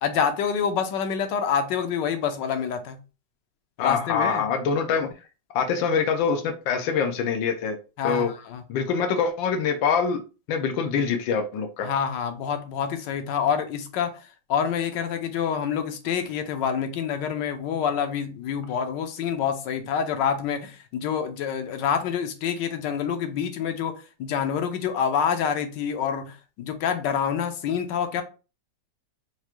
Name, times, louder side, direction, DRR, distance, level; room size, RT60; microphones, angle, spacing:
voice 1, 0.0-3.0 3.8-4.5 8.0-8.6 11.8-28.2, left 7 dB, 75° left, 1.3 m, -27 dB
voice 2, 3.8-5.1 5.5-7.8 8.0-8.3 8.7-10.2 10.5-11.9, left 6 dB, 90° left, 1.4 m, -24 dB
4.6 x 2.4 x 2.9 m
omnidirectional pair, 2.1 m